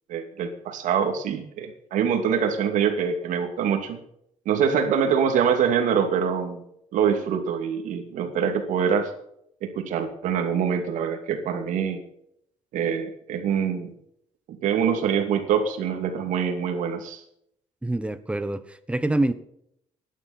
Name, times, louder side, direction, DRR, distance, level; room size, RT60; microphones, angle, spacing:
voice 1, 0.1-4.0 4.5-6.6 6.9-9.1 9.6-12.0 12.7-13.9 14.5-17.2, right 7 dB, 85° right, 6 dB, 2.6 m, -24 dB
voice 2, 17.8-19.3, right 2 dB, 10° right, 12 dB, 1.2 m, -26 dB
17.0 x 11.0 x 4.4 m, 0.73 s
cardioid pair, 120°, 13 cm